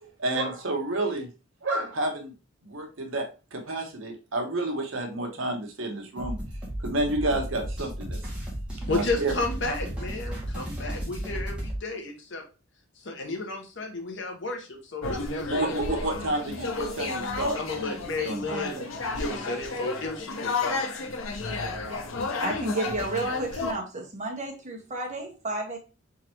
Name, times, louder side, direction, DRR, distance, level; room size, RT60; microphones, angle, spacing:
voice 1, 0.0-1.3 1.6-2.3 2.6-3.3 3.5-6.4 6.8-8.2 8.9-9.3 15.5-18.0 18.2-18.9, right 2 dB, 75° right, 3 dB, 1.0 m, -30 dB
sound 1, 6.2-11.8, equal, 5° right, 1.8 m, -34 dB
voice 2, 8.9-12.4 13.0-16.3 17.5-18.8 19.1-20.8, left 2 dB, 65° left, 2 dB, 1.2 m, -33 dB
sound 2, 15.0-23.7, left 3 dB, 85° left, 0.9 m, -32 dB
voice 3, 22.4-25.8, right 2 dB, 35° right, 0 dB, 1.3 m, -32 dB
4.4 x 3.8 x 3.0 m, 0.32 s
head